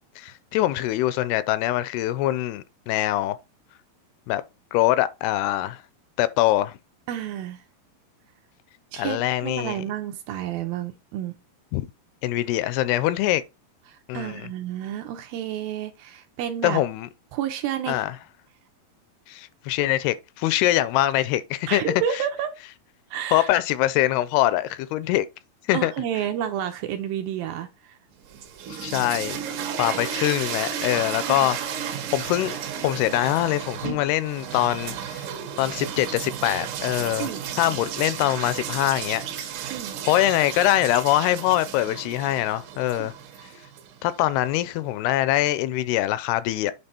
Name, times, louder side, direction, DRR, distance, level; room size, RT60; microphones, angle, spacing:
voice 1, 0.2-3.4 4.3-4.4 4.7-5.8 6.2-6.8 9.0-9.8 11.7-11.9 12.2-13.4 14.1-14.5 16.6-17.1 17.9-18.1 19.3-21.8 23.3-25.3 25.7-25.9 28.7-29.4 29.8-31.6 32.1-32.6 32.8-35.2 35.6-37.3 37.6-39.5 40.1-43.1 44.0-46.7, left 14 dB, 80° left, 2.5 m, -23 dB
voice 2, 7.1-7.6 8.9-11.4 13.9-16.8 17.3-18.0 21.7-22.5 23.1-23.5 25.7-28.0 31.3-31.5 37.2-37.4 39.7-39.9 43.0-43.1, right 10 dB, 85° right, 2.2 m, -30 dB
sound 1, 28.2-44.2, right 8 dB, 65° right, 2.3 m, -33 dB
8.8 x 4.0 x 4.4 m
omnidirectional pair, 4.7 m